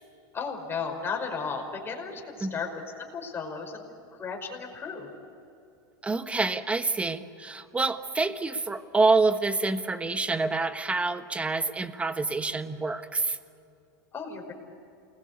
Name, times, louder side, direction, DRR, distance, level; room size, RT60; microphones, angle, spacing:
voice 1, 0.3-2.7 3.0-3.9 4.2-5.1 14.1-14.5, left 5 dB, 20° left, 2 dB, 5.2 m, -34 dB
voice 2, 6.0-13.4, right 3 dB, 10° right, 10 dB, 1.2 m, -27 dB
29.0 x 21.0 x 8.3 m, 2.8 s
supercardioid pair, 125°, 11 cm